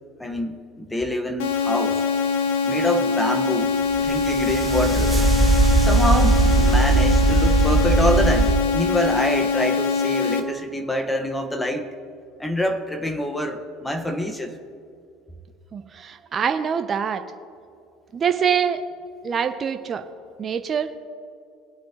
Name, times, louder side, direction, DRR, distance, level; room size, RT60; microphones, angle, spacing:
voice 1, 0.2-2.0 2.7-5.1 5.8-11.9 12.4-14.5, equal, 10° left, 6 dB, 1.3 m, -26 dB
sound 1, 1.4-10.4, left 5 dB, 75° left, 1.1 m, -23 dB
sound 2, 4.0-8.5, right 3 dB, 20° right, 1.5 m, -19 dB
voice 2, 15.7-17.2 18.1-18.8 19.2-20.0 20.4-20.9, right 7 dB, 40° right, 8 dB, 0.7 m, -24 dB
21.0 x 8.4 x 3.0 m, 2.4 s
hypercardioid pair, 75°, 0 cm